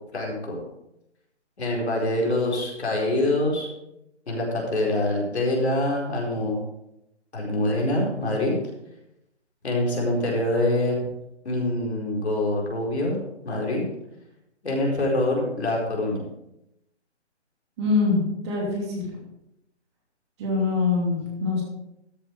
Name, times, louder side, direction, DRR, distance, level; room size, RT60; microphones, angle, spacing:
voice 1, 0.1-0.6 1.6-3.7 4.3-6.6 7.3-8.5 9.6-11.0 11.4-13.2 13.4-13.8 14.6-16.2, left 1 dB, 65° left, -2 dB, 4.6 m, -25 dB
voice 2, 17.8-19.1 20.4-21.6, left 4 dB, 25° right, -1 dB, 2.8 m, -24 dB
13.0 x 7.9 x 4.7 m, 0.85 s
figure-of-eight pair, 155°, 35 cm